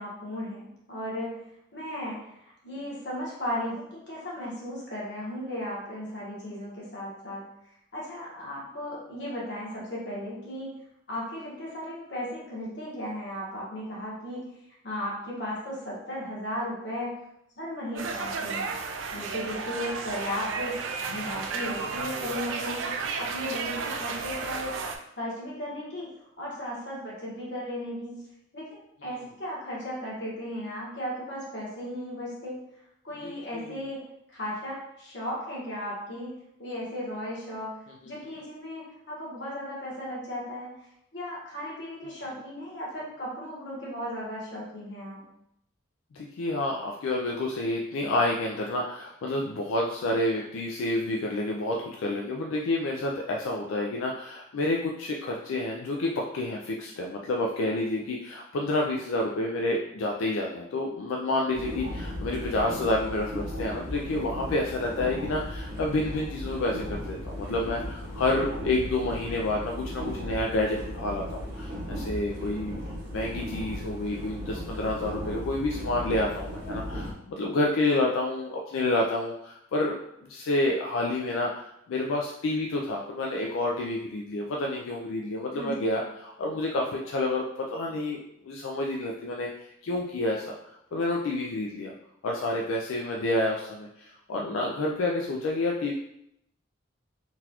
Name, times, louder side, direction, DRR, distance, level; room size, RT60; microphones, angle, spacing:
voice 1, 0.0-1.4 1.7-2.2 2.6-7.4 7.9-10.7 11.1-14.5 14.8-17.2 17.6-18.7 19.1-24.8 25.2-26.1 26.4-28.2 28.5-32.6 33.0-34.0 34.3-36.3 36.6-37.7 38.0-40.8 41.1-45.2 85.6-85.9, equal, 55° left, -6 dB, 1.3 m, -36 dB
sound 1, 18.0-25.0, right 4 dB, 75° right, 0.4 m, -33 dB
voice 2, 33.2-33.8 46.1-72.8 73.1-80.0 80.3-90.5 90.9-91.9 92.2-95.9, left 2 dB, 85° left, -1 dB, 0.4 m, -29 dB
sound 2, 61.5-77.1, equal, 50° right, 1.0 m, -36 dB
3.8 x 2.4 x 2.8 m, 0.79 s
head